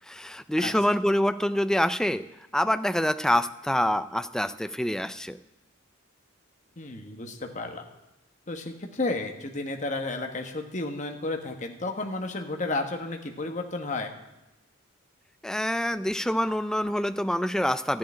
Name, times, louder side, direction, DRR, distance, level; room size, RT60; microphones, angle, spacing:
voice 1, 0.1-2.2 2.5-5.4 15.4-18.0, equal, 5° left, 12 dB, 0.4 m, -26 dB
voice 2, 6.8-7.8 8.5-14.1, left 2 dB, 40° left, 4 dB, 1.3 m, -32 dB
13.5 x 7.7 x 9.8 m, 0.95 s
head